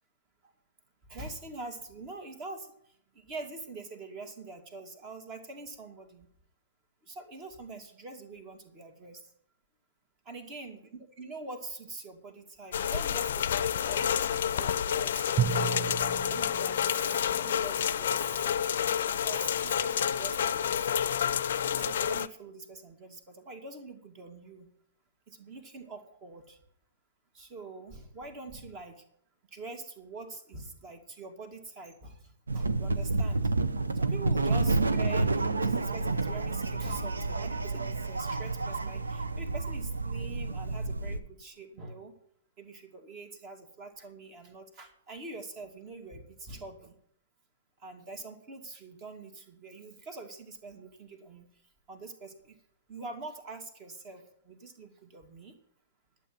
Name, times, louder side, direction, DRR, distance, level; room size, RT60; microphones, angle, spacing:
voice 1, 1.1-2.7 3.1-6.3 7.0-9.2 10.3-15.8 16.3-18.4 19.2-20.8 21.5-24.7 25.3-26.6 27.3-29.0 29.5-33.5 34.0-42.1 42.6-46.9 47.8-51.5 51.9-52.6 52.9-55.6, right 3 dB, 30° right, 7 dB, 2.2 m, -45 dB
sound 1, 12.7-22.3, left 9 dB, 60° left, 0.5 m, -29 dB
Drum, 15.4-17.8, right 10 dB, 15° right, 0.6 m, -33 dB
sound 2, 32.5-41.2, right 3 dB, 80° right, 0.8 m, -29 dB
11.5 x 7.5 x 7.7 m, 0.70 s
figure-of-eight pair, 110°, 0 cm